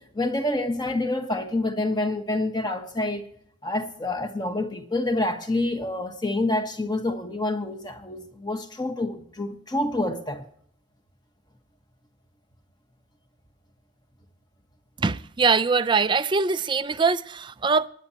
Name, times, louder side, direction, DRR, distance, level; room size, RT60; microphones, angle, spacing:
voice 1, 0.0-3.3 3.6-10.4, left 2 dB, 20° left, 1.3 m, -27 dB
voice 2, 15.0-17.9, right 4 dB, 25° right, 0.4 m, -22 dB
20.5 x 9.9 x 2.8 m
head